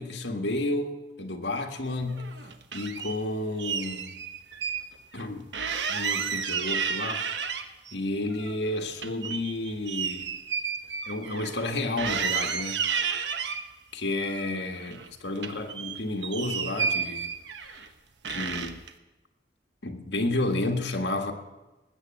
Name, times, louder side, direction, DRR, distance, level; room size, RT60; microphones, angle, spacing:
voice 1, 0.0-2.4 2.7-4.2 5.1-5.5 5.9-7.3 7.9-10.4 11.0-12.9 13.9-17.3 17.6-17.8 18.3-18.8 19.8-21.3, left 2 dB, 75° left, 1.6 m, -31 dB
sound 1, 2.1-3.2 3.6-4.8 5.1-5.2 5.5-7.9 8.3-11.7 12.0-13.6 14.2-15.1 15.4-17.9 18.2-18.9, right 6 dB, 80° right, 1.0 m, -32 dB
19.5 x 8.4 x 7.5 m
head